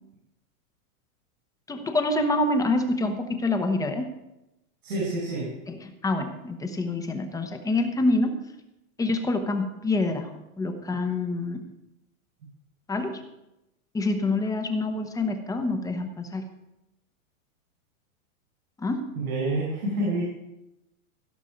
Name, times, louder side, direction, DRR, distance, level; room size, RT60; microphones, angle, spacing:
voice 1, 1.7-4.1 5.7-8.3 9.0-11.6 12.9-13.3 13.9-16.4 18.8-19.2, left 2 dB, 10° left, 7 dB, 0.9 m, -26 dB
voice 2, 4.8-5.5 19.2-20.2, right 2 dB, 85° right, -4 dB, 5.2 m, -27 dB
16.5 x 6.4 x 5.1 m, 0.91 s
hypercardioid pair, 145°, 42 cm